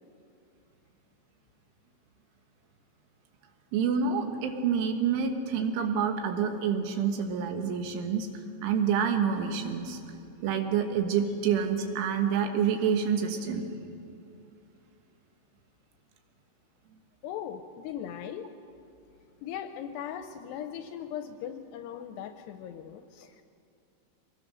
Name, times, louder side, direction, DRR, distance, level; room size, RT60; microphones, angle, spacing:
voice 1, 3.7-8.3 8.6-10.0 10.4-13.7, right 7 dB, 90° right, 5 dB, 4.0 m, -27 dB
voice 2, 17.2-18.5 19.4-23.4, left 9 dB, 80° left, 8 dB, 2.5 m, -39 dB
24.0 x 20.0 x 6.3 m, 2.6 s
omnidirectional pair, 5.4 m